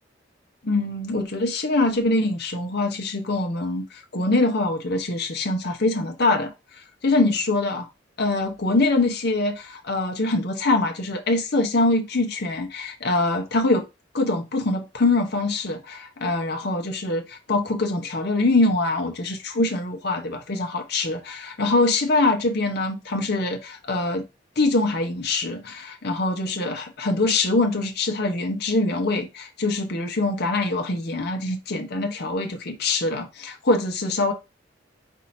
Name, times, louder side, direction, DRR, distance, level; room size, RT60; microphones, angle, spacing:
voice 1, 0.6-6.5 7.0-7.9 8.2-13.9 14.1-24.2 24.6-34.3, left 2 dB, 60° left, 0.9 m, -24 dB
4.3 x 2.7 x 4.1 m
head